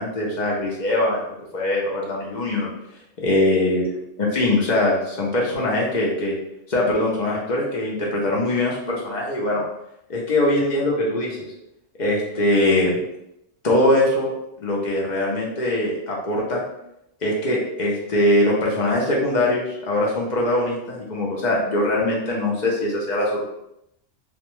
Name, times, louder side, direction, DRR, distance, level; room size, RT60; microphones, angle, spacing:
voice 1, 0.0-2.7 3.2-3.8 4.3-6.4 6.7-9.6 10.1-11.4 12.0-13.0 13.6-14.3 14.6-16.6 17.2-23.4, left 1 dB, 55° left, -3 dB, 0.5 m, -22 dB
2.4 x 2.2 x 2.9 m, 0.83 s
omnidirectional pair, 1.3 m